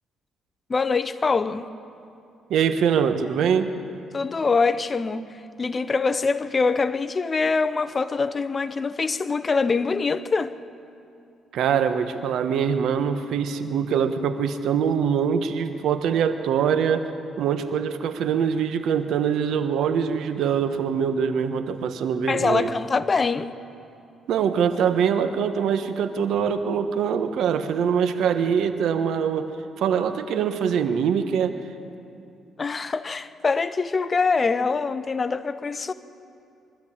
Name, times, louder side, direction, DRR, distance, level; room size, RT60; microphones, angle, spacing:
voice 1, 0.7-1.7 4.1-5.2 5.6-10.5 22.3-23.5 32.6-35.9, left 4 dB, 35° left, 0.8 m, -24 dB
voice 2, 2.5-3.7 11.5-17.0 17.4-22.7 24.3-31.6, right 7 dB, 75° right, 1.2 m, -23 dB
23.0 x 13.0 x 8.7 m
cardioid pair, 90°, 0 cm